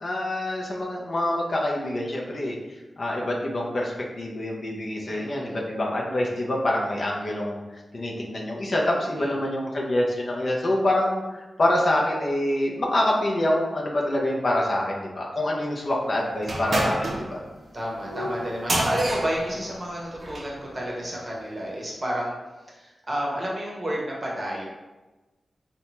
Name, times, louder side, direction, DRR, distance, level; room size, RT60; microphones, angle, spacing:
voice 1, 0.0-2.6 3.0-17.4, left 1 dB, 55° left, -2 dB, 0.5 m, -26 dB
voice 2, 5.1-5.6 9.2-9.5 17.7-22.3 22.7-24.7, equal, 30° right, -4 dB, 0.7 m, -30 dB
sound 1, 16.4-20.6, right 1 dB, 55° right, 0.4 m, -29 dB
2.8 x 2.2 x 2.9 m, 1.1 s
wide cardioid pair, 105°, 0 cm